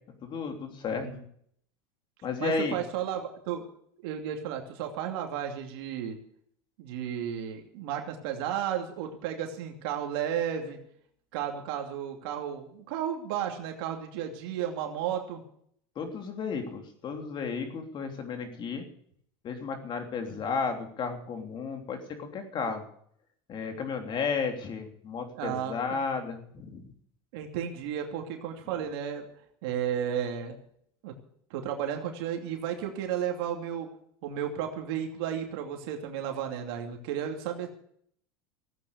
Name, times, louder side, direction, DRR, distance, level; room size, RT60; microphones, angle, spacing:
voice 1, 0.2-1.1 2.2-2.8 15.9-18.8 19.4-22.8 23.5-26.8, left 5 dB, 35° left, 5 dB, 3.2 m, -33 dB
voice 2, 0.9-1.2 2.4-3.2 3.5-3.6 4.0-6.2 6.8-10.8 11.3-15.4 25.3-25.8 27.3-29.2 29.6-30.6 31.0-31.1 31.5-33.9 34.2-37.7, right 9 dB, 70° right, 3 dB, 2.7 m, -33 dB
16.0 x 9.1 x 8.2 m, 0.66 s
supercardioid pair, 125°, 14 cm